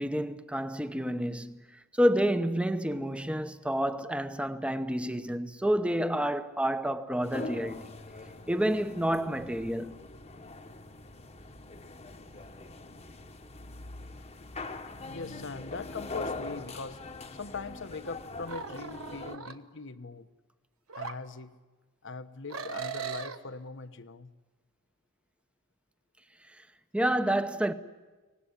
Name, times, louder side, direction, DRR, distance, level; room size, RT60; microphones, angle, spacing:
voice 1, 0.0-1.6 2.0-7.9 8.5-9.9 26.9-27.7, equal, 5° right, 0.9 m, -29 dB
sound 1, 7.2-19.4, left 2 dB, 30° left, 1.2 m, -42 dB
voice 2, 15.0-17.0 17.4-20.3 21.0-21.6 22.0-24.3, left 4 dB, 60° left, 1.1 m, -41 dB
sound 2, 18.5-19.5 20.9-21.1 22.5-23.4, right 6 dB, 80° right, 1.3 m, -38 dB
24.0 x 19.0 x 9.9 m
head